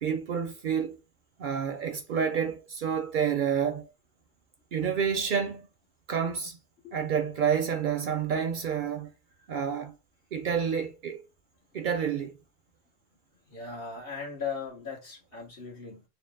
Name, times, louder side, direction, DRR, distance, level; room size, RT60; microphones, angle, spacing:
voice 1, 0.0-1.0 1.4-3.9 4.7-5.7 6.1-6.6 6.9-9.1 9.5-10.0 10.3-11.2 11.7-12.4, right 7 dB, 60° right, 0.6 m, -29 dB
voice 2, 13.5-16.1, left 5 dB, 60° left, 1.6 m, -38 dB
4.1 x 2.0 x 3.5 m
omnidirectional pair, 1.1 m